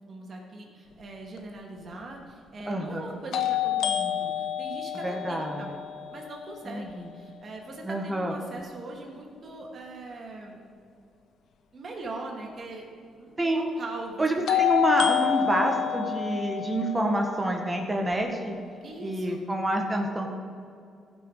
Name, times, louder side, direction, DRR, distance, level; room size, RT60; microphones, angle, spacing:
voice 1, 0.1-5.7 6.1-10.6 11.7-12.9 13.1-14.7 18.8-19.4, right 2 dB, 45° right, 0 dB, 2.4 m, -41 dB
sound 1, 1.4-1.5 3.3-7.2 14.5-18.5, left 11 dB, 70° left, 0.7 m, -29 dB
voice 2, 2.7-3.1 5.0-5.7 6.6-7.1 7.8-8.3 13.4-13.7 14.2-18.5 19.0-20.3, right 1 dB, 15° right, 2 dB, 1.6 m, -27 dB
15.5 x 6.2 x 5.0 m, 2.4 s
cardioid pair, 90°, 0 cm